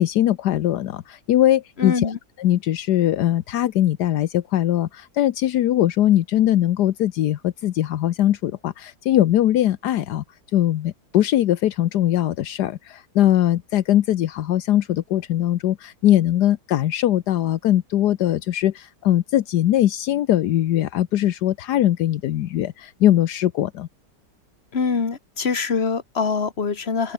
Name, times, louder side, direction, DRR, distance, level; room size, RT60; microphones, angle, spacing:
voice 1, 0.0-2.1 2.4-10.2 10.5-23.9, left 12 dB, 75° left, 1.3 m, -21 dB
voice 2, 1.8-2.2 24.7-27.1, left 5 dB, 40° left, 2.0 m, -24 dB
open air
omnidirectional pair, 1.8 m